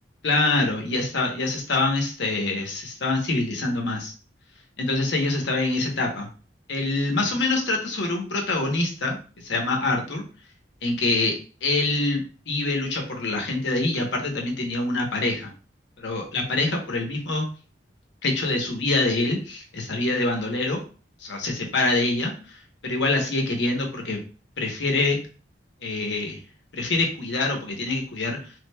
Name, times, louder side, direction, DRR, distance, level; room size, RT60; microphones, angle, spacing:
voice 1, 0.2-4.1 4.8-6.3 6.7-10.2 10.8-11.3 11.6-15.5 16.0-17.5 18.2-20.8 21.2-24.2 24.6-25.2 25.8-26.4 26.7-28.4, left 2 dB, 75° left, 1 dB, 0.9 m, -25 dB
3.4 x 3.3 x 2.2 m, 0.37 s
head